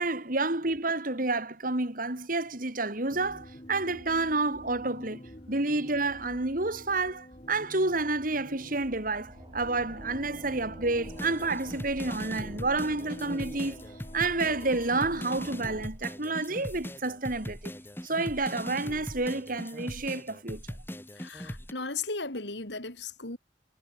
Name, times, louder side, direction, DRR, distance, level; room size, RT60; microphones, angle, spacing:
voice 1, 0.0-13.8 14.1-17.7 18.0-20.6, right 3 dB, 45° right, 2.8 m, -29 dB
sound 1, 3.1-15.9, equal, 35° left, 5.7 m, -47 dB
sound 2, 8.2-19.5, right 1 dB, 25° right, 4.5 m, -53 dB
sound 3, 11.0-21.7, equal, 10° left, 7.7 m, -40 dB
voice 2, 21.2-23.4, left 3 dB, 70° left, 4.3 m, -36 dB
head